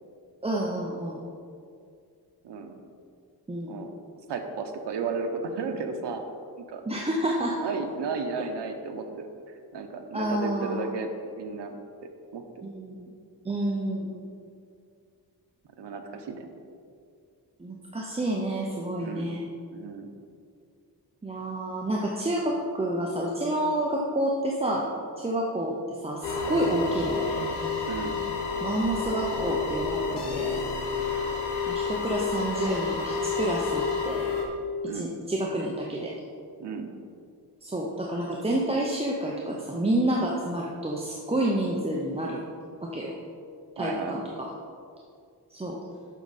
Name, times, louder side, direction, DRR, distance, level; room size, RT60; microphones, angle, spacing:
voice 1, 0.4-1.2 3.5-3.8 6.9-7.6 10.1-10.8 12.6-13.1 13.4-14.3 17.6-19.4 21.2-24.8 25.2-27.4 28.6-30.6 31.7-34.3 34.9-36.1 37.6-42.4 42.8-43.2 43.8-44.5 45.5-45.8, right 1 dB, 15° right, -2 dB, 0.6 m, -29 dB
voice 2, 4.3-6.2 6.6-6.8 7.6-9.3 9.7-11.1 11.4-11.8 12.0-12.4 15.8-16.5 19.0-19.3 19.7-20.1 27.9-28.2 34.8-35.1 36.6-36.9 43.8-44.3, right 4 dB, 90° right, 5 dB, 0.9 m, -34 dB
sound 1, 26.2-34.5, left 4 dB, 80° left, 1.3 m, -29 dB
8.2 x 6.4 x 4.1 m, 2.3 s
wide cardioid pair, 145°, 41 cm